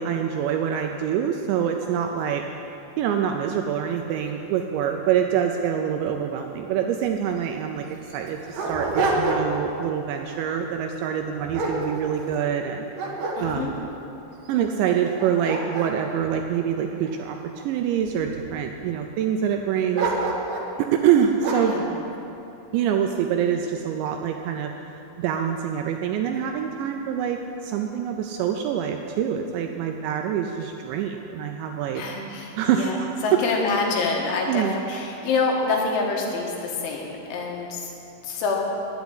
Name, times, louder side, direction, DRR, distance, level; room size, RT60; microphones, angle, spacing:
voice 1, 0.0-2.4 3.0-7.9 8.1-12.9 13.4-13.7 14.5-20.1 20.8-21.7 22.7-24.7 25.2-32.0 32.6-33.4 34.5-34.7, right 8 dB, 85° right, 4 dB, 2.6 m, -25 dB
Dog, 7.0-7.1 7.4-7.5 8.1-9.7 10.1-10.4 11.0-12.5 12.9-13.9 14.5-14.6 15.0-17.4 18.0-18.6 19.9-20.7 21.4-21.8, right 3 dB, 65° right, 2.1 m, -28 dB
voice 2, 13.4-13.7 21.5-21.9 31.9-37.9 38.2-38.6, left 4 dB, 75° left, 0 dB, 3.8 m, -27 dB
10.0 x 8.1 x 9.6 m, 3.0 s
omnidirectional pair, 5.6 m